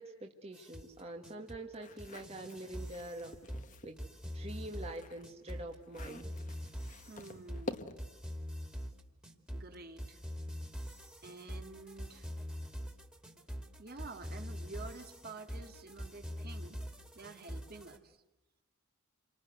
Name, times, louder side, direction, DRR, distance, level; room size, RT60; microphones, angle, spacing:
voice 1, 0.0-3.3 3.8-6.3, right 1 dB, 30° right, 3 dB, 1.6 m, -45 dB
sound 1, 0.5-18.0, equal, 5° right, 2.5 m, -44 dB
sound 2, 1.7-4.0 4.4-8.2, left 2 dB, 35° left, 1.3 m, -48 dB
voice 2, 7.1-7.9 9.5-10.2 11.2-12.3 13.8-16.8 17.2-18.2, right 3 dB, 45° right, 6 dB, 2.1 m, -49 dB
29.5 x 25.5 x 8.0 m, 0.97 s
head